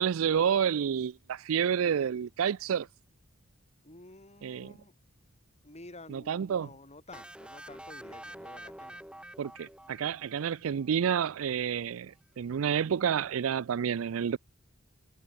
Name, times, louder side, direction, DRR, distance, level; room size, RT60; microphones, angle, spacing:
voice 1, 0.0-2.9 4.4-4.7 6.1-6.7 9.4-14.4, right 8 dB, 80° right, 0.4 m, -29 dB
voice 2, 3.8-4.9 5.6-9.0, left 2 dB, 35° left, 6.9 m, -51 dB
sound 1, 7.1-10.9, right 1 dB, 5° right, 7.8 m, -47 dB
head